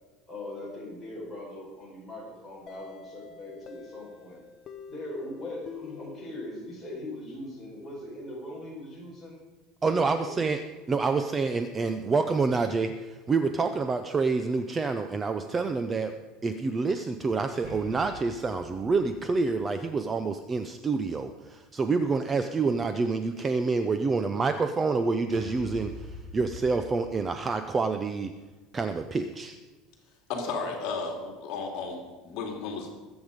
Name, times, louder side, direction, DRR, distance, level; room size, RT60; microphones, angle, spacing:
voice 1, 0.3-4.4 4.9-9.4 9.9-10.3, left 1 dB, 5° left, -7 dB, 4.9 m, -40 dB
sound 1, 2.7-7.3, left 6 dB, 30° left, 0.9 m, -47 dB
voice 2, 9.8-10.6 10.9-16.1 16.4-25.9 26.3-28.3 28.7-29.6, right 4 dB, 15° right, 8 dB, 0.5 m, -27 dB
sound 2, 17.4-21.4, right 2 dB, 30° right, 2.2 m, -50 dB
sound 3, 25.3-27.7, left 1 dB, 75° right, 5.4 m, -43 dB
voice 3, 30.3-32.9, left 4 dB, 50° left, 2 dB, 2.5 m, -34 dB
21.0 x 8.1 x 5.1 m, 1.3 s
cardioid pair, 175°, 0 cm